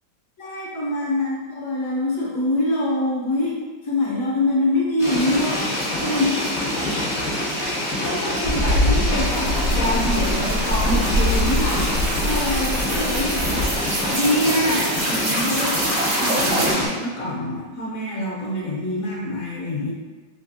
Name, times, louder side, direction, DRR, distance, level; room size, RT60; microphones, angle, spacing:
voice 1, 0.4-3.6 3.8-5.7 6.0-6.4 8.0-11.9 12.2-13.7 14.1-15.8 16.2-19.9, left 1 dB, 60° left, -5 dB, 0.9 m, -25 dB
sound 1, 5.0-16.9, left 1 dB, 45° left, 0.5 m, -25 dB
sound 2, 8.4-14.0, left 1 dB, 70° right, 1.1 m, -24 dB
sound 3, 9.3-16.7, right 2 dB, 85° right, 0.6 m, -28 dB
3.3 x 2.7 x 2.6 m, 1.4 s
omnidirectional pair, 2.0 m